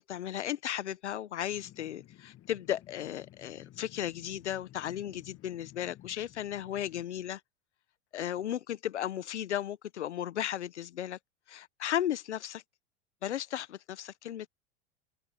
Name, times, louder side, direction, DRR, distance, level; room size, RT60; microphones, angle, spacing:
voice 1, 0.0-7.4 8.1-11.2 11.5-12.6 13.2-14.5, left 11 dB, 90° left, 1.3 m, -35 dB
sound 1, 1.5-7.0, left 13 dB, 40° left, 2.0 m, -55 dB
open air
hypercardioid pair, 90°, 34 cm